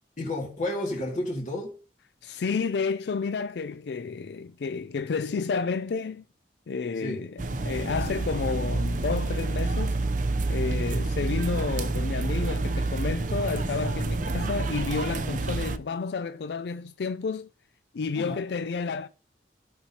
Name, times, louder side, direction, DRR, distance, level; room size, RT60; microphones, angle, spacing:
voice 1, 0.2-1.8 7.0-7.2 18.2-18.4, left 1 dB, 45° left, 2.2 m, -31 dB
voice 2, 2.2-6.2 6.7-10.0 10.5-17.5 17.9-19.1, left 5 dB, 65° left, 0.4 m, -31 dB
sound 1, 7.4-15.8, right 2 dB, 45° right, 0.5 m, -28 dB
15.0 x 5.8 x 2.8 m
head